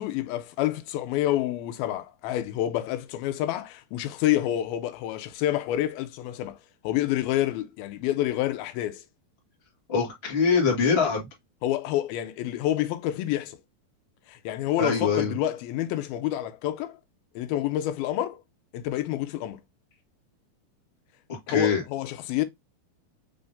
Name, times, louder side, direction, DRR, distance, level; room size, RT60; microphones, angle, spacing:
voice 1, 0.0-6.6 6.8-9.0 11.6-13.6 14.3-17.0 17.4-18.4 18.7-19.6 21.5-22.4, left 13 dB, 80° left, 2.4 m, -28 dB
voice 2, 9.9-11.3 14.8-15.3 21.3-21.8, left 5 dB, 50° left, 0.7 m, -23 dB
5.7 x 3.5 x 2.5 m
omnidirectional pair, 4.4 m